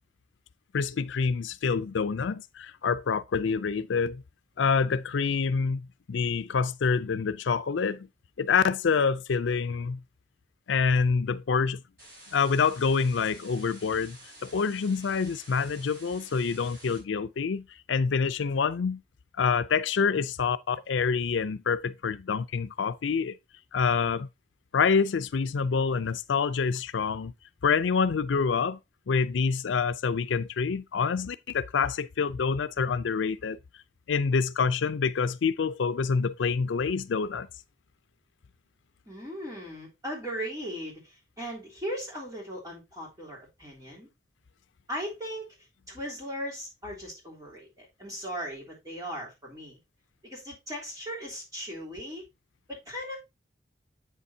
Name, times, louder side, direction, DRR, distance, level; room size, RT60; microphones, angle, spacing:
voice 1, 0.7-4.2 4.6-8.1 8.4-10.0 10.7-11.8 12.3-14.2 14.4-19.0 19.4-23.4 23.7-24.3 24.7-27.3 27.6-28.8 29.1-33.6 34.1-37.5, left 5 dB, 85° left, 0.5 m, -27 dB
sound 1, 12.0-17.0, right 1 dB, 55° right, 5.2 m, -50 dB
voice 2, 39.0-44.1 44.9-45.4 45.9-49.8 50.2-52.2 52.7-53.2, equal, 20° right, 3.3 m, -38 dB
8.2 x 6.9 x 2.7 m
head